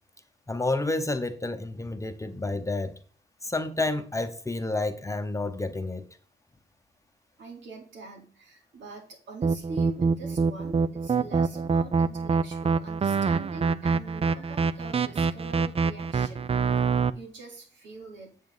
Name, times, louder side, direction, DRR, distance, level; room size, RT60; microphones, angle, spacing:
voice 1, 0.5-3.0 3.4-6.1, left 2 dB, 15° left, 0.9 m, -30 dB
voice 2, 7.4-16.5 16.8-18.4, right 3 dB, 80° right, 3.6 m, -44 dB
sound 1, 9.4-17.1, right 5 dB, 30° right, 0.5 m, -25 dB
9.1 x 7.3 x 4.0 m
cardioid pair, 85°, 19 cm